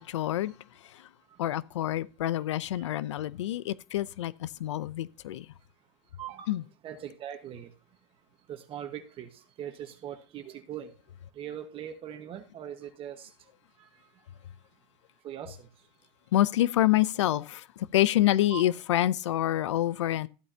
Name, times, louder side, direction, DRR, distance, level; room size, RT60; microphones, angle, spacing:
voice 1, 0.1-0.5 1.4-5.5 6.5-6.6 16.3-17.6 17.9-20.3, left 13 dB, 90° left, 0.6 m, -27 dB
voice 2, 6.2-6.6 6.8-7.7 8.5-10.9 11.3-13.3 13.8-13.9 15.2-15.7 18.5-18.7, right 10 dB, 40° right, 1.4 m, -41 dB
14.0 x 8.8 x 2.8 m
supercardioid pair, 110°, 15 cm